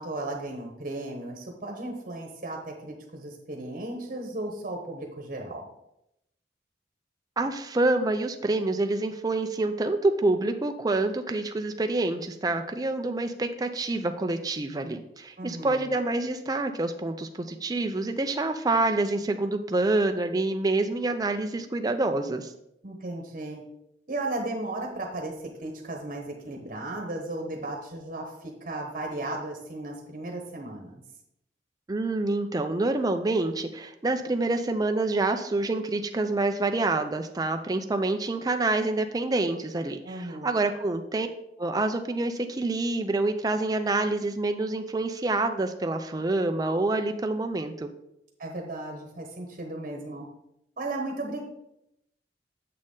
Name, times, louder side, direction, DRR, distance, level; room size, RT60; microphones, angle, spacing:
voice 1, 0.0-5.6 15.4-15.9 22.8-23.6 24.1-31.0 40.0-40.6 48.4-50.3 50.8-51.4, right 2 dB, 45° right, 2 dB, 1.1 m, -35 dB
voice 2, 7.4-22.5 31.9-41.3 41.6-47.9, right 2 dB, 20° right, 6 dB, 0.4 m, -27 dB
7.5 x 6.4 x 3.7 m, 0.83 s
head